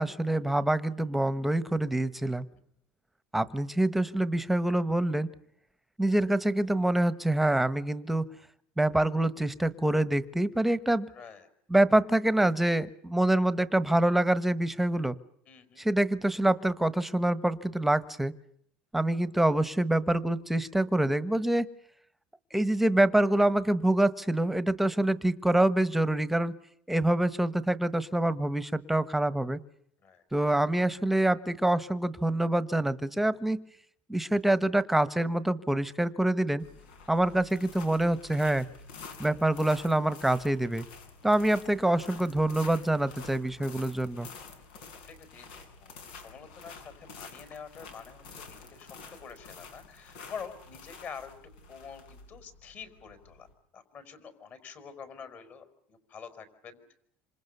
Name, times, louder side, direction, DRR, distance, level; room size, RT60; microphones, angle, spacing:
voice 1, 0.0-2.5 3.3-5.3 6.0-8.3 8.8-11.1 11.7-15.2 15.8-18.3 18.9-21.7 22.5-26.5 26.9-29.6 30.3-33.6 34.1-36.6 37.1-38.7 39.2-40.8 41.2-44.3, right 1 dB, 5° right, 15 dB, 1.2 m, -26 dB
voice 2, 11.1-11.5 15.5-15.8 30.0-30.2 45.1-48.9 49.2-51.3 51.7-53.5 53.7-57.0, left 6 dB, 40° left, 11 dB, 5.5 m, -46 dB
sound 1, 36.6-53.5, left 5 dB, 90° left, 6.9 m, -49 dB
27.0 x 26.5 x 6.9 m, 0.70 s
cardioid pair, 135°, 5 cm